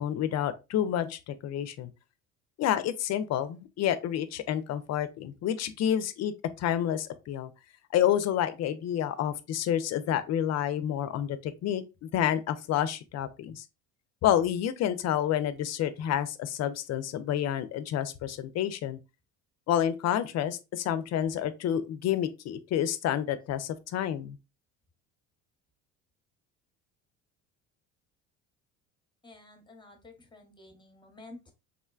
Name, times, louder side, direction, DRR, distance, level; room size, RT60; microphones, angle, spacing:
voice 1, 0.0-1.9 2.6-7.5 7.9-13.6 14.2-19.0 19.7-24.4, left 10 dB, 50° left, 0.5 m, -29 dB
voice 2, 29.2-31.5, left 2 dB, 15° left, 0.8 m, -51 dB
3.7 x 2.1 x 2.3 m
supercardioid pair, 80°, 35 cm